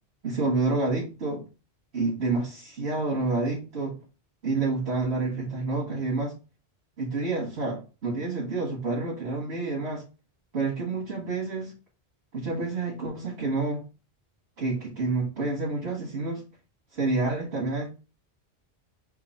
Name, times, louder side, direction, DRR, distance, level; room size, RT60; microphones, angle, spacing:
voice 1, 0.2-1.4 1.9-3.9 4.4-6.3 7.0-10.0 10.5-11.7 12.3-13.8 14.6-16.4 16.9-17.9, right 3 dB, 80° right, -5 dB, 1.5 m, -28 dB
4.6 x 2.4 x 4.2 m, 0.32 s
omnidirectional pair, 1.1 m